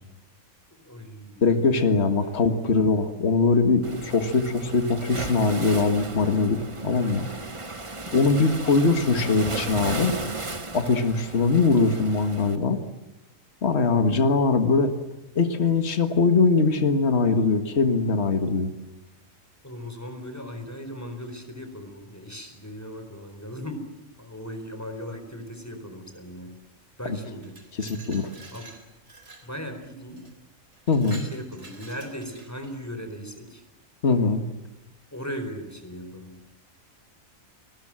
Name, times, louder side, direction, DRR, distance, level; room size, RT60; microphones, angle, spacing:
voice 1, 0.8-1.8 2.1-2.5 8.2-8.5 14.1-14.4 19.6-23.9 24.2-26.6 27.0-27.6 28.5-28.7 29.4-30.3 31.2-33.6 35.1-36.4, equal, 10° left, 7 dB, 4.3 m, -38 dB
voice 2, 1.4-6.6 6.8-7.3 8.1-10.1 10.7-12.8 13.6-14.9 15.4-18.7 27.8-28.3 30.9-31.3 34.0-34.4, left 4 dB, 50° left, 7 dB, 1.9 m, -21 dB
Waves surf, 3.8-12.6, right 3 dB, 25° right, 1.2 m, -35 dB
Glass, 27.2-29.5 30.2-30.3 30.7-32.8, right 2 dB, 55° right, 4.3 m, -47 dB
29.5 x 21.0 x 7.6 m, 1.0 s
omnidirectional pair, 1.5 m